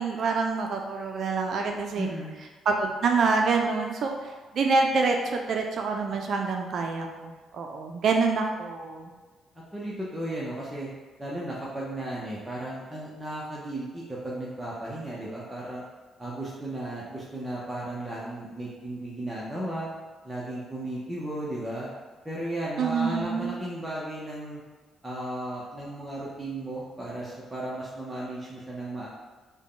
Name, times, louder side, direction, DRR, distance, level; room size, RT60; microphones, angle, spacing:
voice 1, 0.0-2.1 2.7-9.1 22.8-23.5, right 4 dB, 60° right, 3 dB, 0.3 m, -26 dB
voice 2, 1.9-2.4 9.5-10.9 11.2-15.8 16.2-19.9 20.2-21.9 22.2-24.6 25.0-29.1, right 1 dB, 10° right, -6 dB, 0.7 m, -35 dB
3.5 x 2.1 x 3.7 m, 1.3 s
cardioid pair, 90°, 0 cm